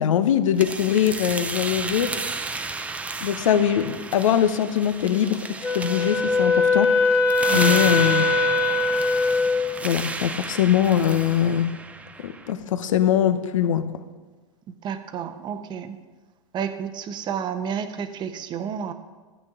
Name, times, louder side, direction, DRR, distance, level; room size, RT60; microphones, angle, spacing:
voice 1, 0.0-2.2 3.2-5.5 5.7-7.0 7.5-8.2 9.8-11.8 12.2-13.9, left 9 dB, 80° left, 11 dB, 0.8 m, -22 dB
sound 1, 0.6-12.5, right 3 dB, 10° right, 0.5 m, -33 dB
Wind instrument woodwind instrument, 5.6-9.7, left 3 dB, 10° left, 1.9 m, -21 dB
voice 2, 7.5-7.8 14.8-16.0 16.5-18.9, right 7 dB, 25° right, 9 dB, 0.8 m, -30 dB
13.0 x 9.3 x 3.7 m, 1.3 s
hypercardioid pair, 125°, 17 cm